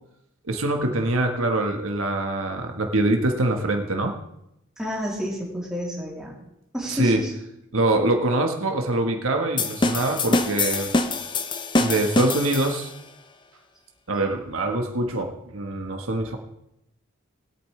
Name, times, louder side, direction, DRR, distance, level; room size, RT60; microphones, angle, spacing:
voice 1, 0.4-4.1 6.9-7.2 7.7-10.9 11.8-12.9 14.1-16.4, right 2 dB, 85° right, 4 dB, 1.4 m, -24 dB
voice 2, 4.8-6.3 6.7-7.3, equal, 5° right, -5 dB, 2.9 m, -30 dB
sound 1, 9.6-13.0, left 2 dB, 20° left, 0.6 m, -24 dB
20.5 x 8.5 x 3.3 m, 0.84 s
head